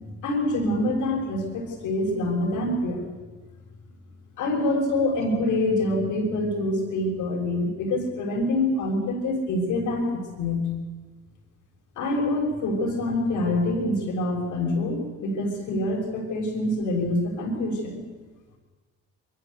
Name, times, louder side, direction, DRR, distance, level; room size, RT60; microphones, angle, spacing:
voice 1, 0.2-3.0 4.4-10.6 12.0-18.0, left 1 dB, 85° left, 0 dB, 6.2 m, -26 dB
22.0 x 14.5 x 8.2 m, 1.3 s
cardioid pair, 90°, 30 cm